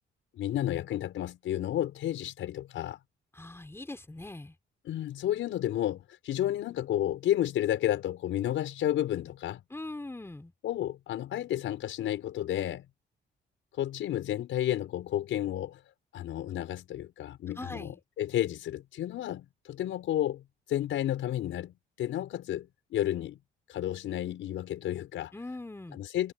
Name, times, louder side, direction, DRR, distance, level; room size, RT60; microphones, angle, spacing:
voice 1, 0.3-3.0 4.9-9.6 10.6-12.9 13.8-15.8 16.1-23.4 23.7-25.3 25.9-26.3, left 12 dB, 80° left, 5.9 m, -31 dB
voice 2, 3.3-4.6 9.7-10.5 17.6-18.0 25.3-26.0, left 2 dB, 10° left, 3.7 m, -41 dB
cardioid pair, 90°, 20 cm